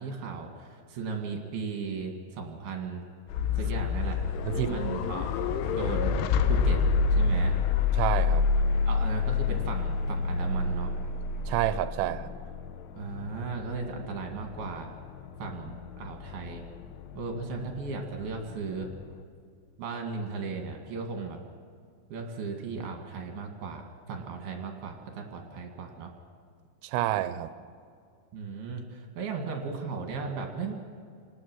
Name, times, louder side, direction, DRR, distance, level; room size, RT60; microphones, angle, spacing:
voice 1, 0.0-3.1 3.6-4.2 4.5-5.3 5.7-6.2 6.5-6.8 7.1-7.6 8.9-11.0 13.0-14.9 15.4-16.7 17.2-18.9 19.8-21.4 22.1-23.8 24.1-26.1 28.3-30.7, right 4 dB, 60° right, 3 dB, 3.6 m, -36 dB
sound 1, 3.3-19.2, left 5 dB, 85° left, 3.5 m, -29 dB
voice 2, 4.5-4.8 7.9-8.5 11.5-12.3 26.8-27.5, right 14 dB, 85° right, 13 dB, 3.3 m, -28 dB
28.0 x 19.5 x 6.2 m, 2.3 s
omnidirectional pair, 5.6 m